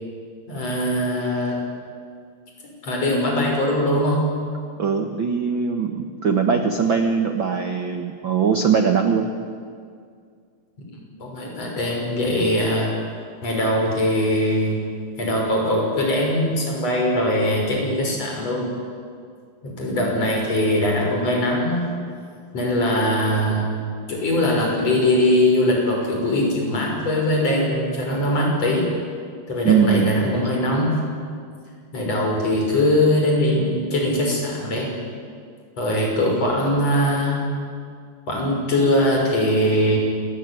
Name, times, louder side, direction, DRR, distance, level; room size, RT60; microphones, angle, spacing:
voice 1, 0.5-1.6 2.8-4.2 10.9-12.9 13.4-14.8 15.2-18.7 19.6-21.9 22.5-23.7 24.1-28.9 29.5-30.9 31.9-34.9 35.8-37.4 38.3-40.0, left 1 dB, 40° left, 0 dB, 7.1 m, -21 dB
voice 2, 4.8-9.3 29.6-30.3, right 6 dB, 65° right, 5 dB, 1.2 m, -21 dB
27.0 x 20.0 x 9.8 m, 2.2 s
omnidirectional pair, 4.4 m